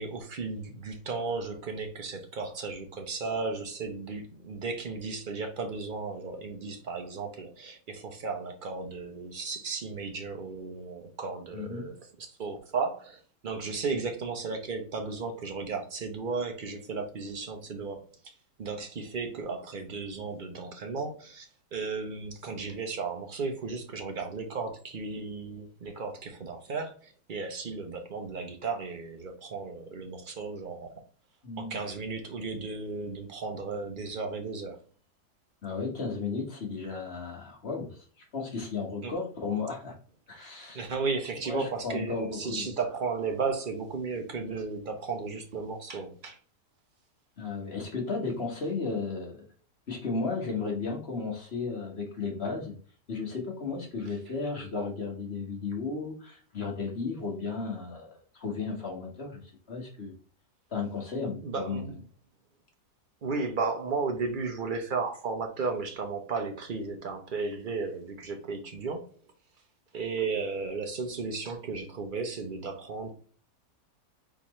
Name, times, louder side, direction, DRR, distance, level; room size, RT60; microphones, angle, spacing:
voice 1, 0.0-18.1 18.6-31.0 31.6-34.8 39.0-39.1 40.7-46.4 61.4-61.9 63.2-69.1 69.9-73.1, right 4 dB, 60° right, 4 dB, 0.5 m, -34 dB
voice 2, 11.5-11.8 31.4-31.8 35.6-37.9 38.3-39.9 40.3-40.9 41.4-42.7 47.4-49.4 49.9-52.7 53.1-59.4 59.7-60.1 60.7-62.0, left 4 dB, 40° left, 0 dB, 1.4 m, -34 dB
4.3 x 3.9 x 3.0 m, 0.41 s
omnidirectional pair, 1.8 m